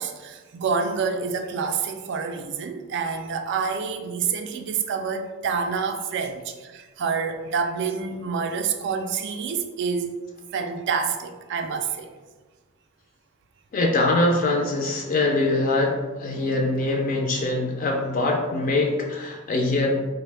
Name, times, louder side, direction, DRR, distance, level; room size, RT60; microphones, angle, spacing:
voice 1, 0.0-10.1 10.5-12.1, right 5 dB, 60° right, 6 dB, 0.3 m, -27 dB
voice 2, 13.7-20.1, left 2 dB, 40° left, 1 dB, 0.3 m, -23 dB
3.3 x 2.0 x 3.2 m, 1.3 s
head